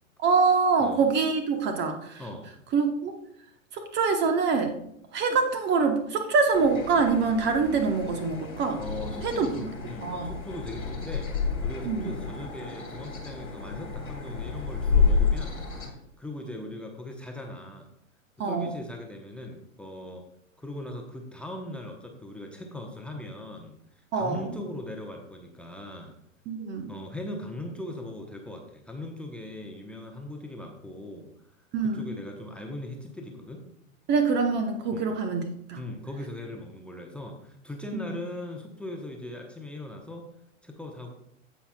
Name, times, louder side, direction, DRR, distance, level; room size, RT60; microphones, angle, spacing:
voice 1, 0.2-2.2 2.7-3.1 3.7-4.8 5.1-8.8 9.2-9.7 10.0-10.3 11.8-12.1 18.4-18.7 24.1-24.4 26.5-26.9 31.7-32.1 34.1-35.8 38.0-38.1, right 4 dB, 25° right, 5 dB, 0.9 m, -25 dB
sound 1, 6.5-15.9, left 5 dB, 85° left, 2.3 m, -30 dB
voice 2, 8.8-11.3 11.6-17.9 18.4-20.2 20.6-23.7 24.1-26.1 26.9-31.3 31.8-33.6 34.9-35.1 35.8-40.3 40.6-41.1, left 1 dB, 5° left, 2 dB, 0.9 m, -39 dB
16.0 x 5.6 x 2.3 m, 0.75 s
figure-of-eight pair, 105°, 41 cm